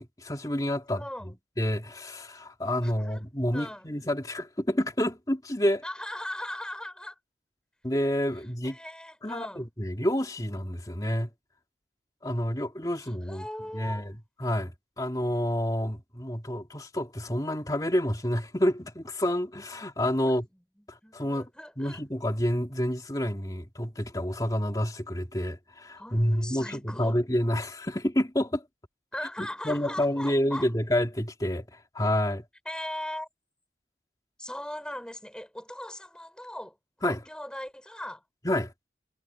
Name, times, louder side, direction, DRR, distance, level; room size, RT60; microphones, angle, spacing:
voice 1, 0.0-1.3 1.6-5.8 7.8-8.8 9.2-11.3 12.2-13.4 13.7-14.1 14.4-20.5 20.9-21.5 21.8-28.6 29.4-32.4 37.0-37.2 38.4-38.7, equal, 20° left, 2.8 m, -29 dB
voice 2, 0.9-1.3 2.8-3.2 3.5-3.9 5.8-7.2 8.6-9.7 13.0-14.1 20.2-20.4 21.0-22.0 26.0-27.2 29.1-30.7 32.6-33.3 34.4-36.8 37.1-38.2, left 1 dB, 5° left, 4.4 m, -39 dB
head